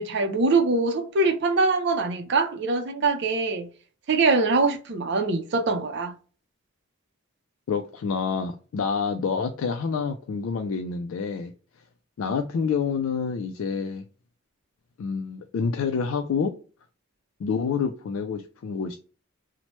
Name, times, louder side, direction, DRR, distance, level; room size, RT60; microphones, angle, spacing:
voice 1, 0.0-3.7 4.1-6.1, right 3 dB, 55° right, 0.5 m, -23 dB
voice 2, 7.7-11.5 12.2-14.0 15.0-16.5 17.4-19.0, left 5 dB, 75° left, 0.3 m, -27 dB
2.9 x 2.1 x 3.0 m
head